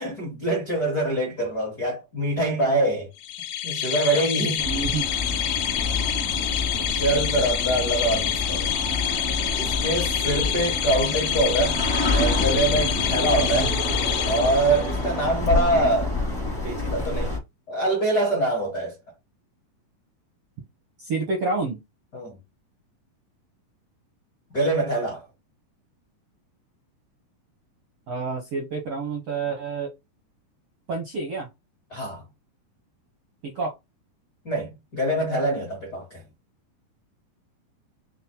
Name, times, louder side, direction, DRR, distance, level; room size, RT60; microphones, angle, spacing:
voice 1, 0.0-3.1 3.6-4.7 6.9-8.7 9.6-11.8 12.1-13.7 14.2-16.1 16.6-17.3 17.7-18.9 22.1-22.4 24.5-25.2 31.9-32.2 34.4-36.2, right 1 dB, 60° left, 0.9 m, -24 dB
sound 1, 3.2-15.1, left 11 dB, 85° left, 1.9 m, -27 dB
sound 2, 4.6-17.4, left 2 dB, 15° left, 0.5 m, -28 dB
voice 2, 4.6-5.1 13.3-13.7 21.0-21.8 28.1-29.9 30.9-31.5 33.4-33.7, right 4 dB, 75° right, 1.3 m, -29 dB
6.0 x 2.0 x 4.3 m
omnidirectional pair, 4.3 m